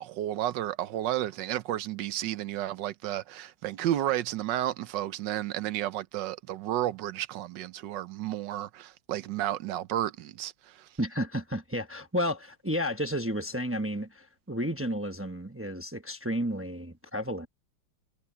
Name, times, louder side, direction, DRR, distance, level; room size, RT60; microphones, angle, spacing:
voice 1, 0.0-10.9, right 13 dB, 75° right, 1.4 m, -32 dB
voice 2, 11.0-17.5, equal, 15° right, 0.4 m, -32 dB
omnidirectional pair, 2.0 m